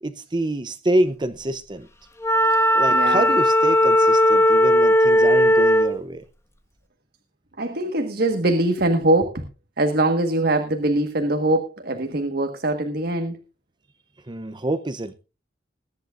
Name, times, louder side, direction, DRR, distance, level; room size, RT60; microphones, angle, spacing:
voice 1, 0.0-1.9 2.7-6.2 14.3-15.1, right 1 dB, 25° right, 0.7 m, -26 dB
Wind instrument woodwind instrument, 2.2-6.0, equal, 15° left, 1.4 m, -17 dB
voice 2, 2.9-3.3 7.6-9.4 9.8-13.4, right 2 dB, 55° right, 1.5 m, -22 dB
21.0 x 10.5 x 2.5 m
head